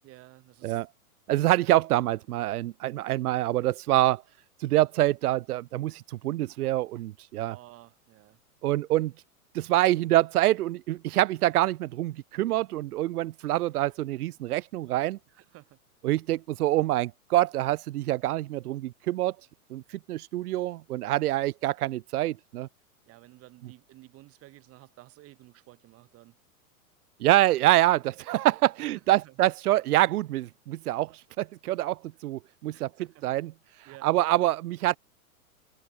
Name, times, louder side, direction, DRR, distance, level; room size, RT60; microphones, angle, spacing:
voice 1, 0.0-0.8 7.5-8.4 15.3-15.8 23.1-26.4 28.3-28.4 28.9-29.4 32.7-33.3 33.9-34.1, right 18 dB, 30° right, 1.9 m, -52 dB
voice 2, 1.3-4.2 4.6-7.6 8.6-9.1 9.5-15.2 16.0-19.4 19.7-22.7 27.2-32.9 33.2-33.5 34.0-35.0, right 15 dB, 80° right, 0.6 m, -26 dB
hypercardioid pair, 125°, 44 cm